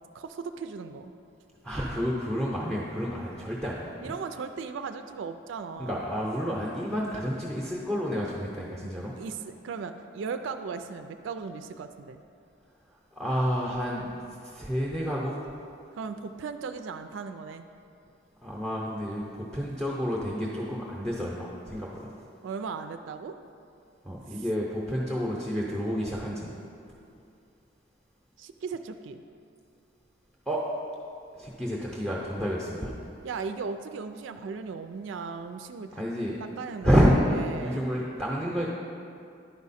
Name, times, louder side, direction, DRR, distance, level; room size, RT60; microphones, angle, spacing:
voice 1, 0.1-1.1 4.0-6.0 9.2-12.2 15.9-17.7 22.4-23.3 24.3-24.4 28.4-29.2 33.2-36.0 36.4-37.9, right 5 dB, 65° right, 8 dB, 0.3 m, -37 dB
voice 2, 1.6-4.1 5.8-9.2 13.1-15.4 18.4-22.1 24.0-26.5 30.5-30.6 31.3-32.9 36.0-36.5 36.8-38.7, equal, ahead, -5 dB, 0.7 m, -29 dB
10.5 x 4.8 x 4.1 m, 2.5 s
head